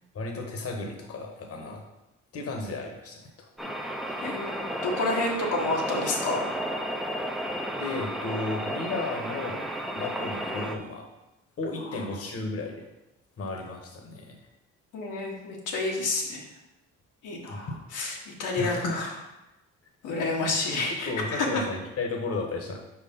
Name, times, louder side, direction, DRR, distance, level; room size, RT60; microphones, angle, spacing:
voice 1, 0.1-1.8 2.3-3.5 4.1-4.6 7.7-9.6 10.0-11.1 11.6-12.8 13.4-14.4 17.4-17.8 18.6-19.0 20.4-20.5 21.0-22.8, left 2 dB, 50° left, 1 dB, 1.2 m, -34 dB
sound 1, 3.6-10.8, equal, ahead, 0.6 m, -33 dB
voice 2, 4.2-6.5 11.8-11.9 14.9-16.5 17.2-19.1 20.0-21.6, left 2 dB, 90° left, -2 dB, 1.4 m, -29 dB
4.8 x 4.6 x 5.4 m, 0.95 s
cardioid pair, 90°, 30 cm